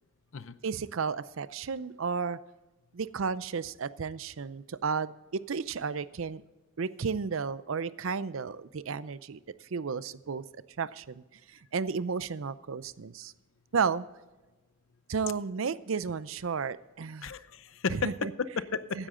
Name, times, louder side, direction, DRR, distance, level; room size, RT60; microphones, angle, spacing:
voice 1, 0.6-2.4 2.9-6.4 6.8-9.4 9.7-10.4 10.8-13.3 13.7-14.1 15.1-17.3 17.9-18.3 18.9-19.1, right 5 dB, 75° right, 16 dB, 0.5 m, -33 dB
voice 2, 17.2-19.1, left 5 dB, 75° left, 14 dB, 0.7 m, -33 dB
16.0 x 10.0 x 3.8 m, 1.1 s
head